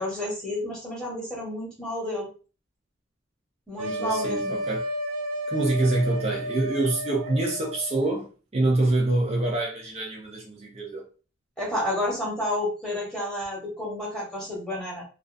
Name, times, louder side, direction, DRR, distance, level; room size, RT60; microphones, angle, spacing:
voice 1, 0.0-2.3 3.7-4.5 11.6-15.0, left 1 dB, 5° left, 0.9 m, -30 dB
voice 2, 3.8-4.8 5.5-8.3 8.5-11.0, right 2 dB, 30° right, 0.4 m, -26 dB
sound 1, 3.8-8.2, equal, 90° right, 0.4 m, -32 dB
2.3 x 2.3 x 2.4 m
head